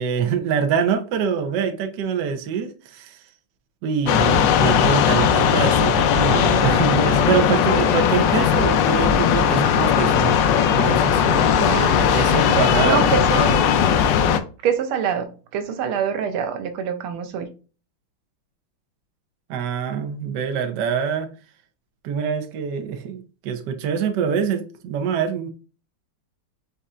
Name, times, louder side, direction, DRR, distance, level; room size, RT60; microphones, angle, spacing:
voice 1, 0.0-3.2 3.8-11.5 11.9-13.5 19.5-21.3 22.0-25.5, right 7 dB, 65° right, 1.2 m, -25 dB
sound 1, 4.1-14.4, left 8 dB, 75° left, 1.1 m, -18 dB
voice 2, 11.6-12.0 12.8-13.6 14.6-17.5, right 7 dB, 90° right, 1.6 m, -25 dB
5.4 x 4.0 x 2.4 m
omnidirectional pair, 2.3 m